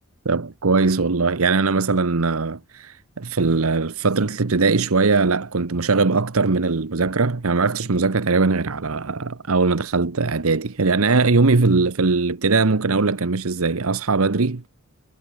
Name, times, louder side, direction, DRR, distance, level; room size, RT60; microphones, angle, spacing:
voice 1, 0.2-14.7, right 4 dB, 70° right, 1.0 m, -20 dB
head